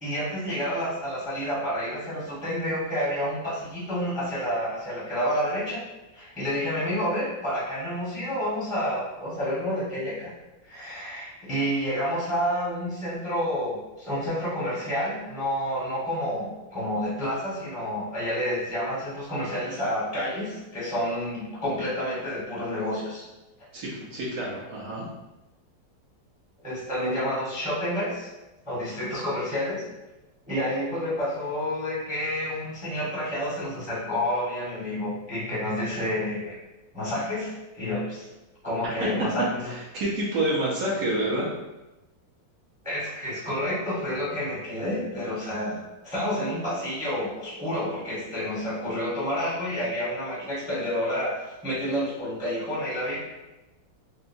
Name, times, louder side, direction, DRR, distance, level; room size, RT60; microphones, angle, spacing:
voice 1, 0.0-5.8 6.1-10.3 10.6-23.2 26.6-28.3 28.6-29.8 30.5-36.5 36.9-38.3 38.6-39.7 42.8-45.8 46.0-53.2, equal, 5° right, -9 dB, 0.7 m, -29 dB
voice 2, 23.7-25.1 39.9-41.5, right 1 dB, 60° right, -6 dB, 1.3 m, -28 dB
4.6 x 2.0 x 2.6 m, 1.0 s
omnidirectional pair, 2.1 m